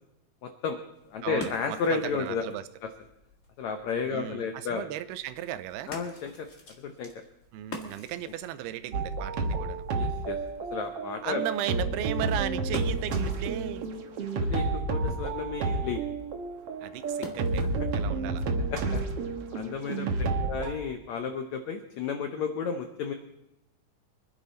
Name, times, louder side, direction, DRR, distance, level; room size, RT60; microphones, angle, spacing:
voice 1, 0.4-0.8 1.1-2.4 3.6-4.9 5.9-6.5 6.8-7.1 9.9-10.4 10.7-11.4 14.4-16.0 18.7-19.0 19.5-23.1, left 5 dB, 80° left, 6 dB, 1.6 m, -32 dB
sound 1, 0.8-18.0, left 2 dB, 35° left, 1.3 m, -48 dB
voice 2, 1.2-2.6 4.1-5.9 7.5-9.8 11.2-13.9 16.8-17.7 17.9-18.4 20.0-20.5, right 12 dB, 90° right, 13 dB, 2.7 m, -36 dB
sound 2, 8.9-20.7, right 3 dB, 65° right, 1.5 m, -30 dB
24.5 x 10.5 x 4.2 m, 0.88 s
omnidirectional pair, 4.4 m